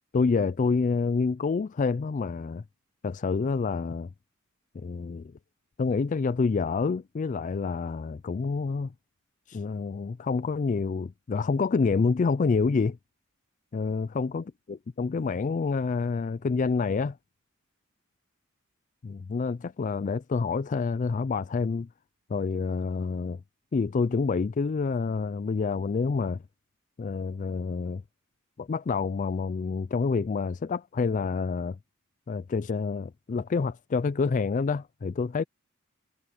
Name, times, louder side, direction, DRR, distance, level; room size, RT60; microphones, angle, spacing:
voice 1, 0.1-2.6 3.0-4.1 4.8-5.3 5.8-8.9 9.5-13.0 13.7-17.2 19.0-21.9 22.3-23.4 23.7-26.4 27.0-28.0 28.6-31.8 32.3-35.4, left 4 dB, 35° left, 0.3 m, -28 dB
head